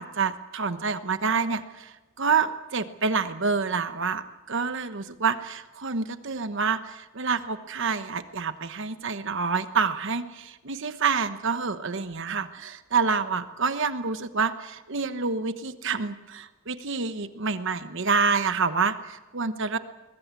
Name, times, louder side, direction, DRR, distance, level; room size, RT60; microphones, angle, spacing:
voice 1, 0.0-19.8, right 5 dB, 60° right, 10 dB, 1.1 m, -27 dB
22.0 x 20.5 x 8.3 m, 1.1 s
head